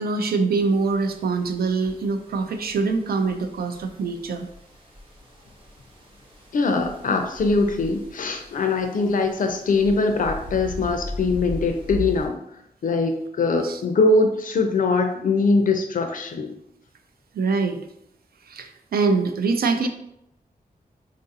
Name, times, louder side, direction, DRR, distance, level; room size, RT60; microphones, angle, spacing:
voice 1, 0.0-4.5 13.6-13.8 17.3-17.9 18.5-19.9, right 4 dB, 85° right, 7 dB, 0.4 m, -24 dB
sound 1, 0.6-12.3, equal, 35° right, 0.6 m, -39 dB
voice 2, 6.5-12.4 12.8-16.5, left 3 dB, 60° left, 5 dB, 0.4 m, -22 dB
3.7 x 2.5 x 2.7 m, 0.77 s
wide cardioid pair, 165°, 15 cm